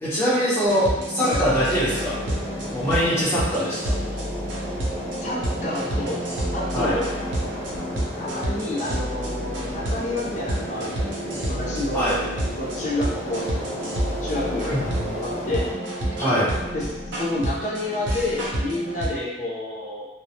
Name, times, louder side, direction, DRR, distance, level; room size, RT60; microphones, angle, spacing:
voice 1, 0.0-2.2 2.7-4.0 6.7-7.0 11.9-12.2 14.6-15.0 16.2-16.5, equal, 15° left, -11 dB, 0.8 m, -23 dB
sound 1, 0.7-19.1, right 1 dB, 90° right, 0.6 m, -29 dB
sound 2, 1.6-15.7, left 1 dB, 85° left, 0.6 m, -35 dB
voice 2, 5.2-6.3 6.5-7.1 8.2-12.1 12.6-13.9 14.2-14.7 15.2-15.6 16.7-20.1, left 1 dB, 40° left, -5 dB, 0.5 m, -29 dB
2.2 x 2.0 x 2.7 m, 1.0 s
head